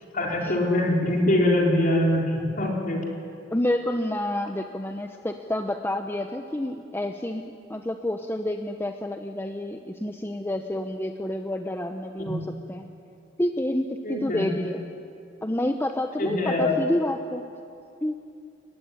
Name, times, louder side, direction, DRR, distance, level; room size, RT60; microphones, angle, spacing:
voice 1, 0.1-3.0 12.2-12.4 14.0-14.5 16.2-16.8, left 1 dB, 45° left, -1 dB, 4.5 m, -23 dB
voice 2, 3.5-12.4 12.7-12.9 13.4-14.8 15.4-17.4 18.0-18.2, left 1 dB, 10° left, 5 dB, 0.9 m, -29 dB
29.5 x 15.0 x 9.9 m, 2.5 s
head